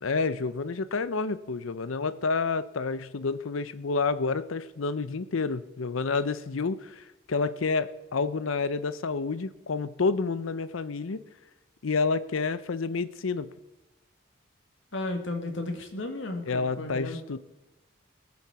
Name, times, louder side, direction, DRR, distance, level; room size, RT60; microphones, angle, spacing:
voice 1, 0.0-11.2 11.8-13.5 16.5-17.4, left 4 dB, 80° left, 15 dB, 0.6 m, -29 dB
voice 2, 14.9-17.2, left 2 dB, 65° left, 4 dB, 1.7 m, -34 dB
19.5 x 7.1 x 4.7 m, 0.99 s
head